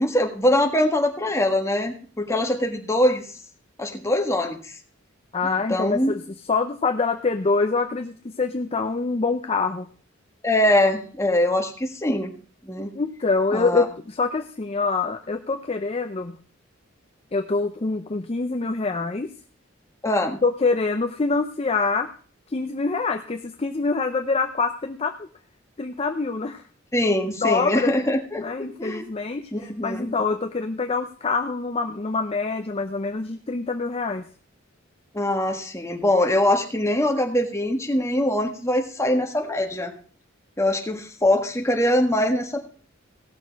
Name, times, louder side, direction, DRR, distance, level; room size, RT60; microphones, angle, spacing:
voice 1, 0.0-3.2 3.8-4.7 5.4-6.1 10.4-12.3 12.6-12.9 13.5-13.8 20.0-20.4 26.9-29.0 29.5-30.1 35.1-39.9 40.6-42.6, left 1 dB, 15° left, 3 dB, 1.5 m, -23 dB
voice 2, 5.3-6.2 6.5-9.9 12.9-16.4 17.3-19.3 20.4-22.1 22.5-25.3 25.8-26.6 27.4-27.9 28.4-34.2, left 4 dB, 30° left, 6 dB, 0.6 m, -25 dB
17.0 x 6.5 x 4.6 m, 0.43 s
head